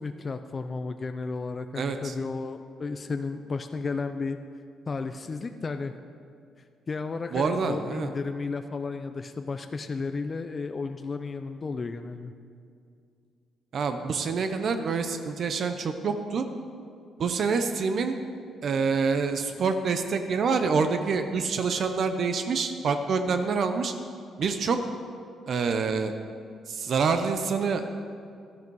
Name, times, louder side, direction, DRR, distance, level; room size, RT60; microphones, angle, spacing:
voice 1, 0.0-4.4 4.9-5.9 6.9-12.3, left 4 dB, 35° left, 8 dB, 0.5 m, -33 dB
voice 2, 1.8-2.1 7.3-8.1 13.7-16.4 17.2-18.2 18.6-23.9 24.4-24.8 25.5-26.1 26.7-27.9, right 5 dB, 55° right, 8 dB, 0.7 m, -26 dB
13.0 x 10.5 x 4.7 m, 2.3 s
cardioid pair, 90°, 0 cm